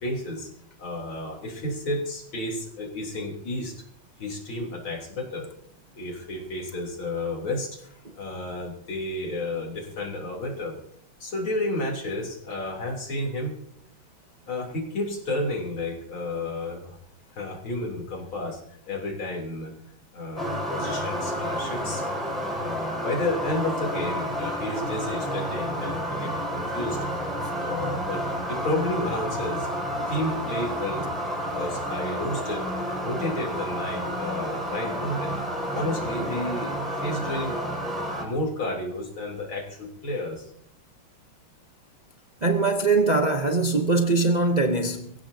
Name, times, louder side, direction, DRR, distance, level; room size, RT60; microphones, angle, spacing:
voice 1, 0.0-0.5 0.8-3.8 4.2-5.5 5.9-7.9 8.2-10.8 11.2-13.5 14.5-17.0 17.3-18.6 18.9-19.7 20.1-22.0 22.6-27.0 27.6-29.7 30.1-31.1 31.4-32.6 33.0-35.3 35.7-37.6 38.1-40.5, left 1 dB, 85° left, 4.2 m, -31 dB
sound 1, 20.4-38.2, equal, ahead, 5.7 m, -30 dB
voice 2, 42.4-45.1, right 3 dB, 40° right, 0.6 m, -22 dB
23.5 x 16.0 x 2.8 m
omnidirectional pair, 2.2 m